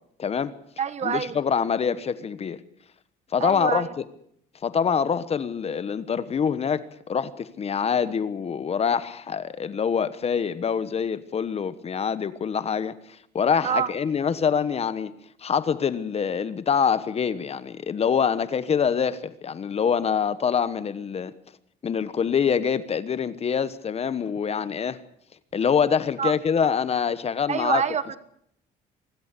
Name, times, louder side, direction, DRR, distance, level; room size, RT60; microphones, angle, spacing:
voice 1, 0.2-0.5 1.0-2.6 3.3-3.9 4.6-15.1 15.4-21.3 21.8-25.0 25.5-27.8, left 7 dB, 35° left, 1.2 m, -25 dB
voice 2, 0.8-1.4 3.4-3.8 13.6-13.9 26.2-26.3 27.5-28.2, right 8 dB, 40° right, 1.5 m, -26 dB
24.5 x 13.5 x 8.4 m
cardioid pair, 110°, 17 cm